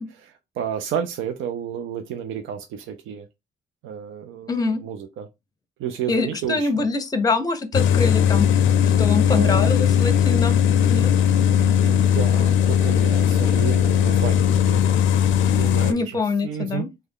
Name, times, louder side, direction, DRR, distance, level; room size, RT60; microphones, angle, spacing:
voice 1, 0.1-3.3 3.8-5.3 5.8-6.7 9.3-9.7 11.6-15.0 15.3-16.9, right 8 dB, 80° right, 0.5 m, -31 dB
voice 2, 4.5-4.8 6.1-8.5 9.0-10.5 10.9-11.1 15.9-16.9, left 3 dB, 20° left, 0.6 m, -24 dB
sound 1, 7.7-15.9, left 9 dB, 75° left, 0.4 m, -18 dB
3.3 x 2.2 x 3.5 m
cardioid pair, 90°, 20 cm